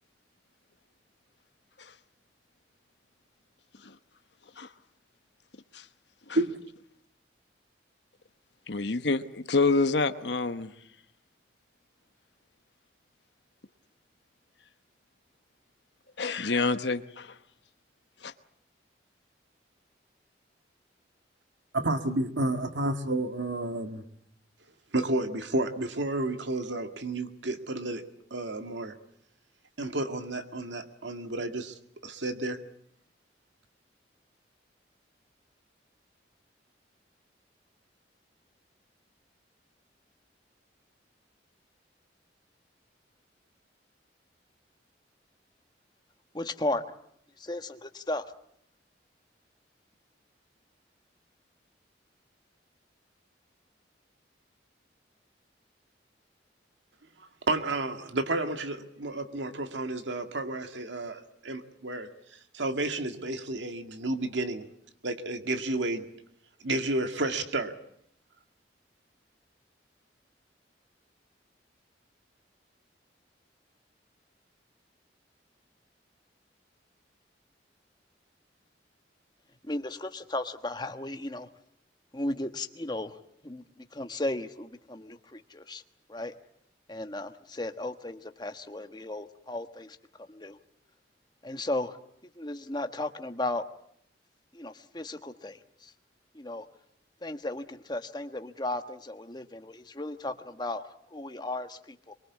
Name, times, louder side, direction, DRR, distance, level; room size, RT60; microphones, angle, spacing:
voice 1, 8.7-10.7 16.2-17.3 18.2-18.3, left 3 dB, 70° left, 9 dB, 1.1 m, -27 dB
voice 2, 21.7-24.0 24.9-28.0 28.3-28.9 29.8-31.7 32.0-32.6 57.5-64.7 65.0-66.1 66.6-67.7, right 2 dB, 85° right, 7 dB, 2.0 m, -31 dB
voice 3, 46.3-46.9 47.4-48.3 79.6-81.5 82.1-85.8 86.1-86.3 86.9-90.6 91.4-92.0 92.3-93.7 94.5-95.9 96.3-96.7 97.2-102.1, left 2 dB, 25° left, 7 dB, 1.3 m, -35 dB
23.5 x 23.0 x 8.4 m, 0.70 s
head